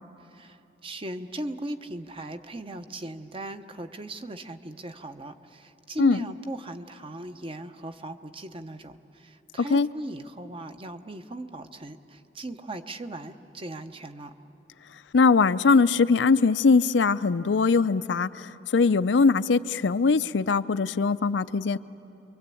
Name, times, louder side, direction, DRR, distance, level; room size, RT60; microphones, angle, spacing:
voice 1, 0.2-14.3, right 1 dB, 30° right, 8 dB, 0.9 m, -38 dB
voice 2, 15.1-21.8, left 4 dB, 85° left, 13 dB, 0.5 m, -21 dB
28.5 x 23.0 x 8.5 m, 2.8 s
head